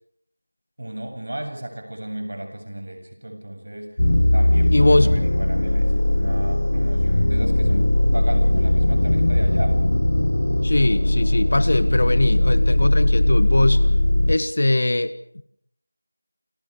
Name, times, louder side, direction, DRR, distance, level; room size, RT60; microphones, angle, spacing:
voice 1, 0.8-4.0 4.3-9.8, right 1 dB, 55° right, 5 dB, 7.5 m, -34 dB
sound 1, 4.0-14.4, left 1 dB, 65° left, 1.1 m, -19 dB
voice 2, 4.7-5.2 10.6-13.8 14.3-15.4, left 2 dB, 45° left, 14 dB, 1.6 m, -21 dB
29.0 x 27.0 x 4.9 m, 0.65 s
figure-of-eight pair, 175°, 0 cm